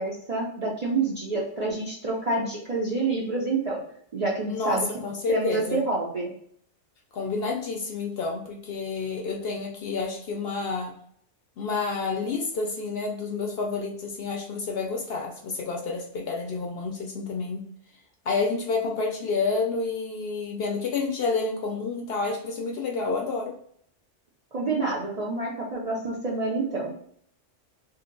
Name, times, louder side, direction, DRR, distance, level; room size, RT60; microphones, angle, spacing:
voice 1, 0.0-3.8 4.1-4.9 5.3-6.3 24.5-26.9, right 3 dB, 45° right, -4 dB, 0.5 m, -28 dB
voice 2, 4.5-5.8 7.1-11.0 11.6-17.6 18.3-23.5, left 4 dB, 65° left, 1 dB, 0.7 m, -29 dB
2.8 x 2.1 x 3.7 m, 0.63 s
omnidirectional pair, 1.3 m